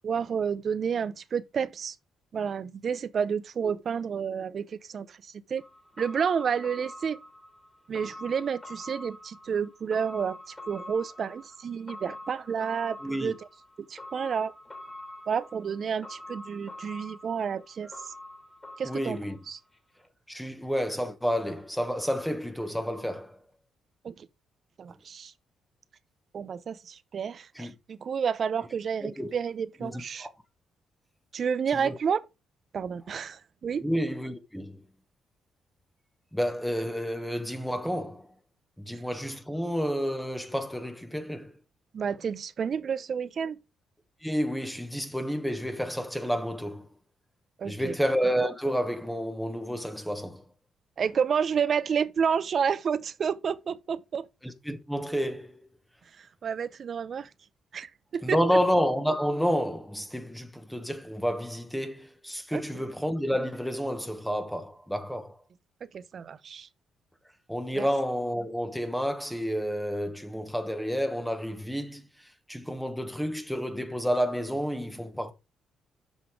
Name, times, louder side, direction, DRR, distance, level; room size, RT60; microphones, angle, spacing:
voice 1, 0.0-2.0 2.3-5.2 5.5-5.6 6.0-7.2 7.9-13.4 13.9-14.5 15.3-17.9 18.8-19.2 19.5-19.6 24.0-24.3 24.8-25.3 26.3-30.3 31.3-32.2 32.7-33.8 41.9-43.6 47.6-48.0 51.0-54.3 56.2-57.3 57.7-58.4 62.5-62.6 65.9-66.7 67.7-67.9, right 7 dB, 50° right, 0.7 m, -30 dB
sound 1, 5.6-19.8 20.0-20.1, left 1 dB, 20° left, 2.7 m, -45 dB
voice 2, 13.0-13.3 17.9-18.0 18.8-19.4 20.3-23.4 27.5-27.7 29.0-29.3 29.8-30.3 31.7-32.0 33.8-34.8 36.3-38.3 38.8-41.5 44.2-46.9 47.6-50.4 54.4-55.6 58.2-65.4 67.5-72.0 72.5-75.3, equal, ahead, 1.2 m, -30 dB
7.1 x 5.7 x 4.8 m
cardioid pair, 90°, 0 cm